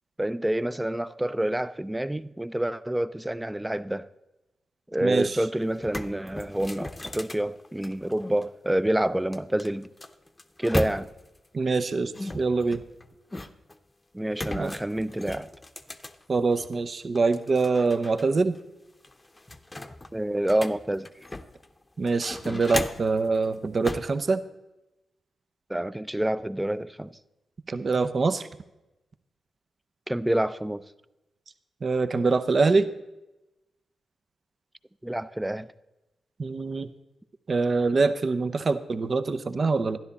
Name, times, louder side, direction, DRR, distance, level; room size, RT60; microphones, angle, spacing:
voice 1, 0.2-4.1 4.9-9.9 10.6-11.1 14.1-15.5 20.1-21.1 25.7-27.1 30.1-30.9 35.0-35.7, right 1 dB, 10° right, 0.5 m, -28 dB
sound 1, 5.3-5.4 5.7-8.4 9.3-11.4 12.1-13.8 14.3-16.7 17.1-18.2 18.5-18.6 19.0-21.7 22.1-23.2 23.8-24.2, left 1 dB, 25° left, 0.8 m, -36 dB
voice 2, 11.5-12.8 14.5-14.7 16.3-18.6 22.0-24.4 27.7-28.4 31.8-32.9 36.4-36.9 37.5-40.0, right 4 dB, 50° right, 0.7 m, -24 dB
12.5 x 10.5 x 4.1 m
supercardioid pair, 40°, 0 cm